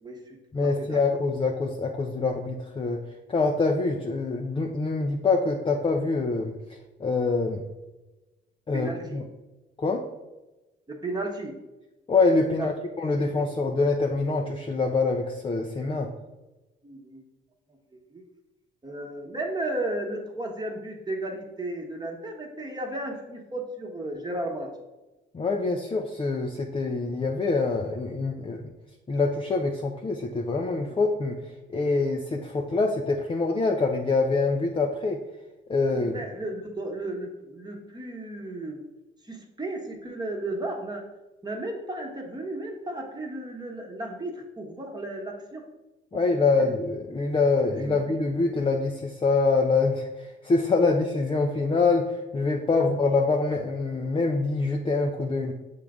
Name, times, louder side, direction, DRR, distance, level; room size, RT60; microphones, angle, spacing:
voice 1, 0.0-1.0 8.7-9.2 10.9-11.6 12.5-12.7 13.1-13.5 16.0-16.1 16.8-17.2 17.7-18.2 18.8-24.7 35.8-38.8 39.2-41.0 41.4-45.6 46.1-46.8 47.9-48.0 52.7-52.8, right 2 dB, 20° right, 1 dB, 1.1 m, -34 dB
voice 2, 0.5-3.0 3.3-7.6 8.7-9.2 9.8-10.0 12.1-16.1 25.3-28.6 29.1-35.2 35.7-36.1 46.1-55.5, left 3 dB, 25° left, 2 dB, 0.6 m, -25 dB
6.9 x 3.7 x 3.6 m, 1.1 s
cardioid pair, 90°, 20 cm